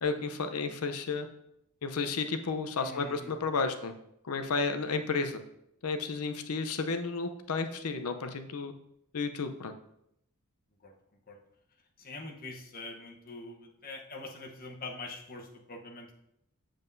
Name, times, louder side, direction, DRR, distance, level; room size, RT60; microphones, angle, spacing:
voice 1, 0.0-1.3 1.8-3.9 4.2-5.4 5.8-8.7 9.1-9.7, left 4 dB, 80° left, 7 dB, 0.7 m, -32 dB
voice 2, 2.8-3.3 10.8-10.9 11.3-11.4 12.0-16.1, left 2 dB, 40° left, 1 dB, 1.0 m, -44 dB
7.6 x 7.4 x 2.7 m, 0.78 s
head